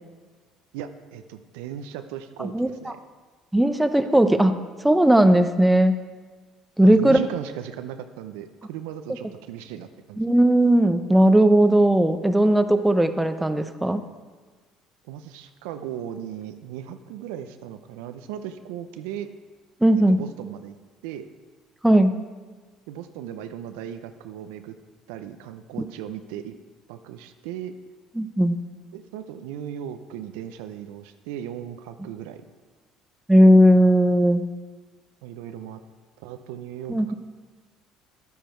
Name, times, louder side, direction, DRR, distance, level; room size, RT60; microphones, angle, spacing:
voice 1, 0.7-3.0 6.8-10.2 15.1-19.3 20.1-20.7 21.0-21.3 22.9-24.8 25.1-26.6 26.9-27.7 28.9-32.4 35.2-35.8 36.2-37.1, right 10 dB, 80° right, 9 dB, 0.6 m, -37 dB
voice 2, 3.5-5.9 6.8-7.2 10.2-14.0 19.8-20.2 21.8-22.1 28.2-28.6 33.3-34.4 36.9-37.1, right 1 dB, 5° right, 9 dB, 0.8 m, -17 dB
11.0 x 9.3 x 4.5 m, 1.4 s
hypercardioid pair, 70°, 0 cm